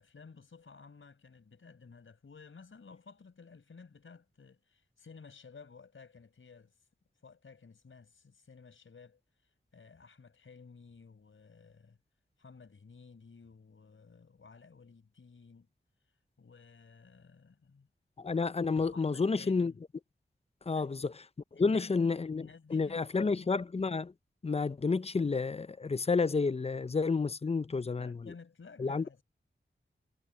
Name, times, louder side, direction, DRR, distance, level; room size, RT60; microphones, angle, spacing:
voice 1, 0.0-6.7 7.2-12.0 12.4-15.7 16.4-17.9 18.9-19.8 20.7-20.9 21.5-23.6 27.8-29.2, left 5 dB, 90° left, 4.9 m, -54 dB
voice 2, 18.2-19.7 20.7-21.1 21.6-22.4 22.7-24.1 24.4-28.2 28.8-29.0, left 4 dB, 30° left, 0.5 m, -30 dB
wide cardioid pair, 90°, 20 cm